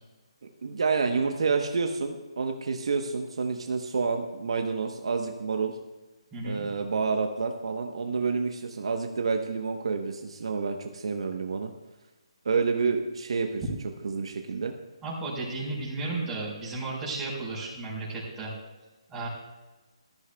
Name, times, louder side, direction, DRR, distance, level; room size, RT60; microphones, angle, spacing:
voice 1, 0.6-5.7 6.4-11.7 12.4-13.6 14.0-14.7, right 4 dB, 65° right, 4 dB, 1.0 m, -29 dB
voice 2, 6.3-6.7 15.0-18.5 19.1-19.3, right 2 dB, 10° right, -6 dB, 4.6 m, -34 dB
16.5 x 13.5 x 2.3 m, 1.2 s
hypercardioid pair, 155°, 3 cm